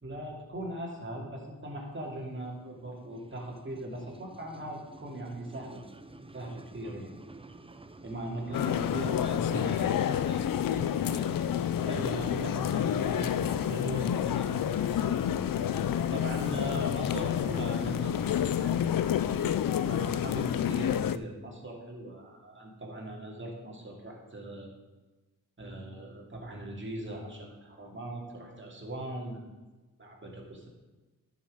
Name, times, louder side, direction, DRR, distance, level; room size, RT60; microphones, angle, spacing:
voice 1, 0.0-5.8 6.3-7.1 8.0-9.7 11.8-15.2 16.1-18.8 19.8-24.7 25.6-29.4 30.0-30.7, right 1 dB, 35° right, -1 dB, 2.7 m, -39 dB
sound 1, 1.8-18.4, right 2 dB, 15° right, 0.6 m, -50 dB
sound 2, 8.5-21.2, left 9 dB, 65° left, 0.5 m, -29 dB
voice 2, 8.5-9.9 10.2-11.5, left 4 dB, 30° left, 5 dB, 0.7 m, -48 dB
10.5 x 6.6 x 5.0 m, 1.2 s
cardioid pair, 65°, 36 cm